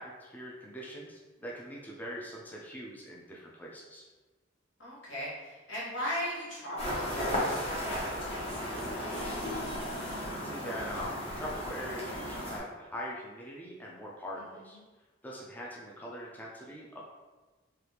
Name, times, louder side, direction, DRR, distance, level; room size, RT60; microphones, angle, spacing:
voice 1, 0.0-4.1 10.4-14.8 15.2-17.0, equal, 10° left, -4 dB, 0.4 m, -42 dB
voice 2, 4.8-9.3, equal, 80° left, -7 dB, 1.3 m, -39 dB
sound 1, 6.8-12.6, equal, 30° left, 0.8 m, -35 dB
sound 2, 8.6-9.0 10.8-11.2, right 2 dB, 70° right, 0.4 m, -47 dB
3.3 x 2.3 x 2.9 m, 1.3 s
head